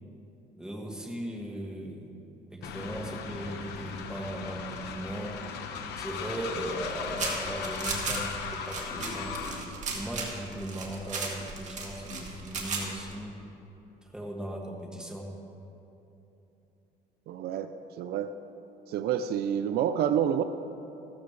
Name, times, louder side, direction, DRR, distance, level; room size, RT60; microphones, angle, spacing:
voice 1, 0.6-2.1 2.5-5.4 6.0-9.4 9.9-13.4 14.1-15.3, right 1 dB, 5° right, -1 dB, 2.0 m, -38 dB
Train, 2.6-9.7, left 6 dB, 80° left, 1.1 m, -38 dB
sound 1, 6.9-13.1, right 4 dB, 45° right, 2.3 m, -35 dB
sound 2, 8.5-9.9 10.3-10.4 10.6-10.7 11.9-12.8 13.5-13.6, left 2 dB, 35° left, 2.1 m, -46 dB
voice 2, 17.3-18.4 18.9-20.4, right 9 dB, 70° right, 10 dB, 0.5 m, -28 dB
15.0 x 13.5 x 3.2 m, 3.0 s
cardioid pair, 110°, 17 cm